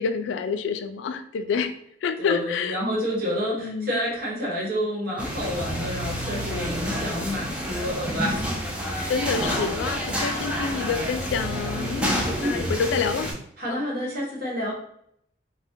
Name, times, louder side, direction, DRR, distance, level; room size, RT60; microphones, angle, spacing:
voice 1, 0.0-1.7 2.0-2.8 3.6-4.0 9.1-13.3 13.7-13.8, left 5 dB, 80° left, 9 dB, 0.3 m, -28 dB
voice 2, 2.2-8.6 8.9-9.1 12.4-12.6 13.6-14.7, equal, 50° right, -3 dB, 1.0 m, -29 dB
sound 1, 5.2-13.3, equal, 5° right, 0.4 m, -29 dB
2.7 x 2.1 x 3.5 m, 0.70 s
head